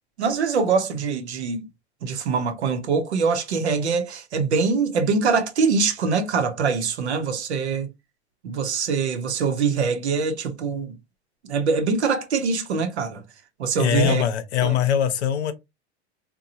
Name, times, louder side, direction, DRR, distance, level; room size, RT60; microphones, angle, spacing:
voice 1, 0.2-1.7 2.0-7.9 8.4-10.9 11.5-13.2 13.6-14.2 14.6-14.8, right 5 dB, 90° right, 0.7 m, -23 dB
voice 2, 13.8-15.5, left 10 dB, 80° left, 0.7 m, -22 dB
2.9 x 2.2 x 2.6 m
hypercardioid pair, 100°, 33 cm